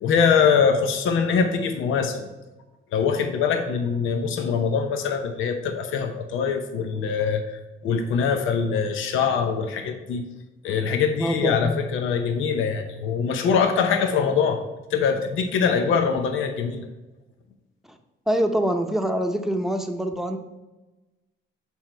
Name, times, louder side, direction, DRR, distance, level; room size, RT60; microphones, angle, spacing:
voice 1, 0.0-2.3 2.9-10.2 10.6-14.6 14.9-16.9, left 6 dB, 85° left, 5 dB, 0.8 m, -23 dB
voice 2, 11.2-11.8 18.3-20.4, right 1 dB, ahead, 5 dB, 0.8 m, -24 dB
7.2 x 4.6 x 4.4 m, 1.1 s
cardioid pair, 90°, 20 cm